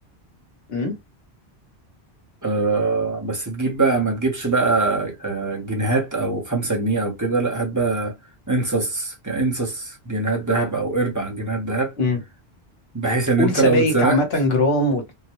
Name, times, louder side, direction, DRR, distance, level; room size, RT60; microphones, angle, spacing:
voice 1, 2.4-8.1 8.5-11.9 12.9-14.2, right 3 dB, 20° right, 0.9 m, -22 dB
voice 2, 13.4-15.1, left 2 dB, 65° left, 1.2 m, -21 dB
3.7 x 2.1 x 3.0 m
omnidirectional pair, 1.1 m